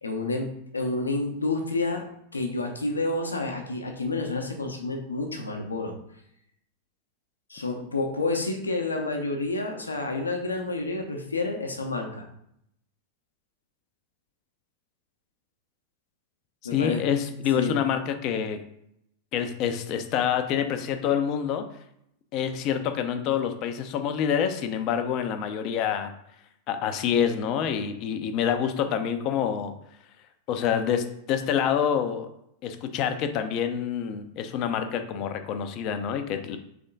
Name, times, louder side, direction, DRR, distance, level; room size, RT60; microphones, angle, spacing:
voice 1, 0.0-2.1 2.3-5.9 7.5-12.3 16.6-17.0 17.5-17.8, left 3 dB, 75° left, 3 dB, 0.7 m, -29 dB
voice 2, 16.7-18.6 19.3-21.6 22.3-26.1 26.7-29.7 30.5-32.3 32.6-36.6, left 8 dB, 40° left, 8 dB, 0.5 m, -27 dB
3.6 x 3.3 x 3.9 m, 0.75 s
figure-of-eight pair, 90°, 0 cm